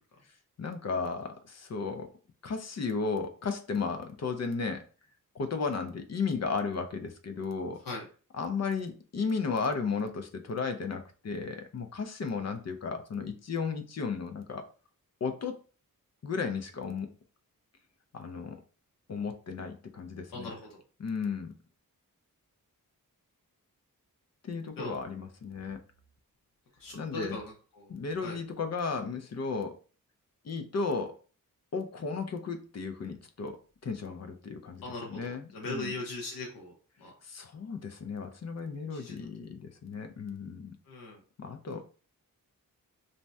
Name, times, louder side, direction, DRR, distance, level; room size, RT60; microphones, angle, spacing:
voice 1, 0.6-2.1 2.4-4.8 5.3-7.8 8.3-14.6 15.2-15.6 16.2-17.1 18.1-18.6 19.1-20.5 21.0-21.5 24.4-25.8 26.9-27.4 27.9-29.7 30.4-31.2 31.7-33.6 33.8-35.9 37.2-40.7 41.4-41.8, left 5 dB, 50° left, 6 dB, 0.4 m, -34 dB
voice 2, 20.3-20.8 24.8-25.0 26.8-27.9 28.2-28.4 34.8-36.7 37.0-37.1 38.9-39.2 40.9-41.2, left 2 dB, 75° left, -1 dB, 0.8 m, -39 dB
2.7 x 2.1 x 3.2 m, 0.37 s
wide cardioid pair, 140°, 35 cm